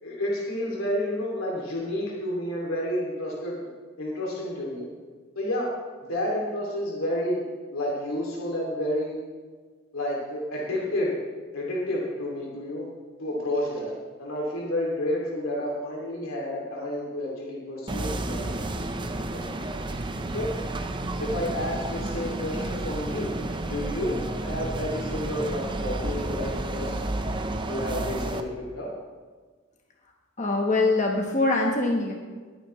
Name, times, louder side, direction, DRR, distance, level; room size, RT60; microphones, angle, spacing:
voice 1, 0.0-3.6 4.0-4.9 5.4-5.7 6.1-9.2 9.9-11.2 11.5-12.9 13.2-13.9 14.2-18.6 19.3-19.7 20.3-20.5 21.2-26.9 27.6-28.9, left 1 dB, 85° left, -3 dB, 2.6 m, -30 dB
sound 1, 17.9-28.4, right 2 dB, 25° right, 0.7 m, -31 dB
voice 2, 30.4-32.1, left 2 dB, 35° left, 0 dB, 1.1 m, -23 dB
20.5 x 9.3 x 3.2 m, 1.5 s
head